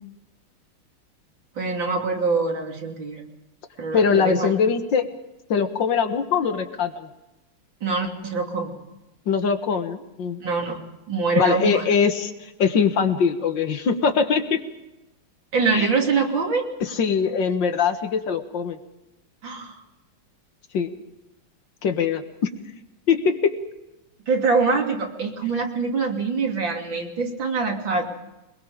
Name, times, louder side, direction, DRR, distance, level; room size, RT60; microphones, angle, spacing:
voice 1, 1.6-3.2 3.8-4.5 7.8-8.7 10.4-10.8 11.1-11.8 15.5-16.6 19.4-19.8 24.3-28.1, right 4 dB, 65° right, 1 dB, 3.6 m, -24 dB
voice 2, 3.9-5.1 5.5-7.1 9.3-10.4 11.4-14.6 15.7-15.9 16.8-18.8 20.7-20.9 21.8-22.5 23.1-23.5, left 6 dB, 65° left, 7 dB, 1.9 m, -22 dB
23.0 x 22.0 x 5.1 m, 0.99 s
omnidirectional pair, 2.3 m